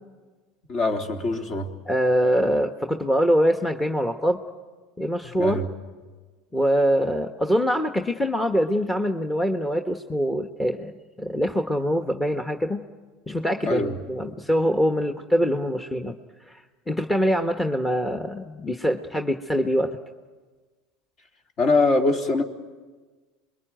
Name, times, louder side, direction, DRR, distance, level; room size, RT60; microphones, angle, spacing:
voice 1, 0.7-1.7 5.2-5.7 13.6-14.0 21.6-22.4, left 2 dB, 45° left, 3 dB, 3.5 m, -23 dB
voice 2, 1.8-4.4 5.0-5.6 6.5-10.9 11.2-12.9 13.3-16.2 16.5-20.0, equal, 10° left, 5 dB, 1.3 m, -24 dB
28.0 x 22.5 x 9.2 m, 1.4 s
supercardioid pair, 100°, 0 cm